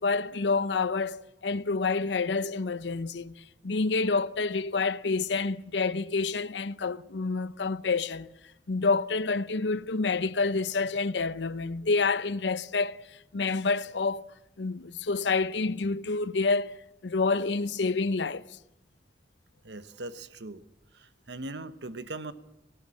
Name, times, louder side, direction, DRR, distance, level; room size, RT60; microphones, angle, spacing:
voice 1, 0.0-8.3 8.7-14.3 14.6-18.6, left 4 dB, 90° left, 0.7 m, -28 dB
voice 2, 19.6-20.6 20.9-22.3, right 2 dB, 80° right, 1.2 m, -40 dB
19.5 x 17.5 x 8.6 m
head